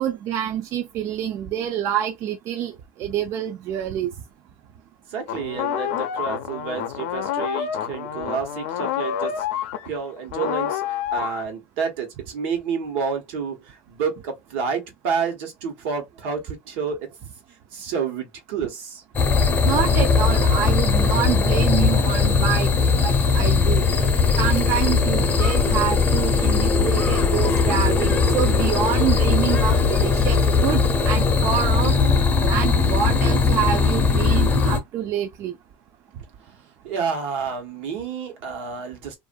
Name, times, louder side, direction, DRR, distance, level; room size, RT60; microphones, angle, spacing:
voice 1, 0.0-4.1 19.6-23.9 24.4-31.9 32.4-35.5, right 10 dB, 45° right, 0.4 m, -27 dB
voice 2, 5.1-17.2 17.7-19.0 36.4-36.5 36.8-39.2, right 6 dB, 80° right, 1.0 m, -29 dB
sound 1, 5.3-10.0 10.3-11.4, left 10 dB, 85° left, 0.5 m, -28 dB
sound 2, 19.1-34.8, left 4 dB, 30° left, 0.6 m, -19 dB
2.5 x 2.4 x 2.2 m
supercardioid pair, 130°, 7 cm